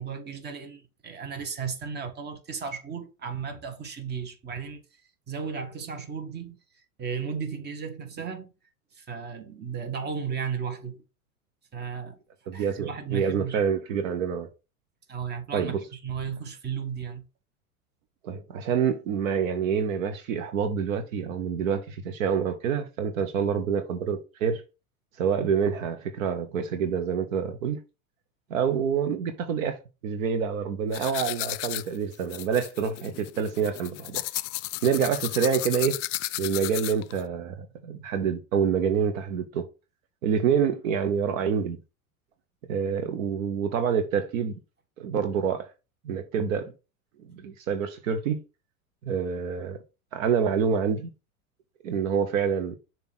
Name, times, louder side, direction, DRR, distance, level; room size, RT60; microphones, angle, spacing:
voice 1, 0.0-5.0 5.3-6.6 7.0-8.5 8.9-11.0 11.7-12.2 12.5-13.6 15.1-17.3, right 6 dB, 25° right, 1.4 m, -35 dB
voice 2, 12.5-14.5 15.5-15.8 18.2-24.6 25.2-27.8 28.5-29.8 30.0-34.2 34.8-36.0 36.4-37.5 37.8-39.7 40.2-41.8 42.7-44.6 45.0-45.7 46.0-46.7 47.3-48.4 49.0-49.8 50.1-51.1 51.8-52.8, right 7 dB, 60° right, 1.1 m, -27 dB
sound 1, 30.9-37.2, left 17 dB, 55° left, 0.5 m, -34 dB
7.0 x 2.8 x 5.8 m
hypercardioid pair, 95°, 44 cm